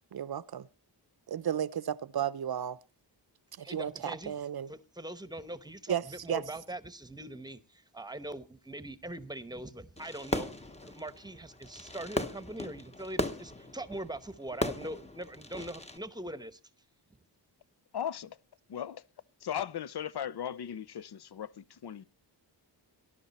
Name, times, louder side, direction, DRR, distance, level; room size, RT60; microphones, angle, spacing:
voice 1, 0.1-0.7 1.3-2.8 3.6-4.7 5.9-6.4, right 9 dB, 60° right, 0.7 m, -33 dB
voice 2, 3.6-4.4 4.7-16.6, right 1 dB, 10° right, 0.9 m, -42 dB
Fireworks, 10.0-16.0, left 1 dB, 15° left, 0.9 m, -37 dB
voice 3, 17.9-18.4 18.7-19.0 19.4-22.0, left 9 dB, 65° left, 0.7 m, -37 dB
19.0 x 11.5 x 4.1 m
wide cardioid pair, 180°, 43 cm